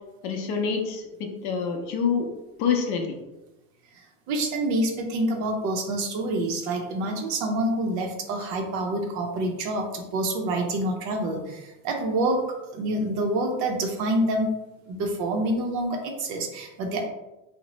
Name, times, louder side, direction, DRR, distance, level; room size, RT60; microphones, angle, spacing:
voice 1, 0.2-2.3 2.6-3.2, left 6 dB, 50° left, 3 dB, 0.6 m, -26 dB
voice 2, 4.3-12.4 12.7-14.5 14.9-17.1, right 1 dB, 40° right, 2 dB, 0.5 m, -27 dB
2.7 x 2.0 x 2.9 m, 0.98 s
supercardioid pair, 125°, 42 cm